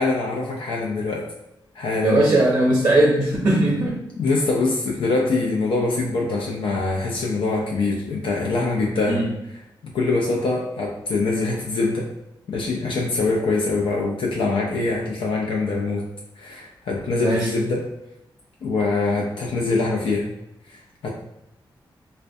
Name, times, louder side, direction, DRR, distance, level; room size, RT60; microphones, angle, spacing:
voice 1, 0.0-1.3 1.7-2.3 4.2-9.2 9.8-12.1 12.5-16.0 16.4-17.9 18.6-20.3 20.7-21.1, left 3 dB, 80° left, -2 dB, 0.4 m, -24 dB
voice 2, 2.0-4.0 9.1-9.3 17.2-17.5, right 1 dB, 40° right, -3 dB, 0.5 m, -19 dB
2.3 x 2.1 x 2.6 m, 0.87 s
cardioid pair, 85°, 9 cm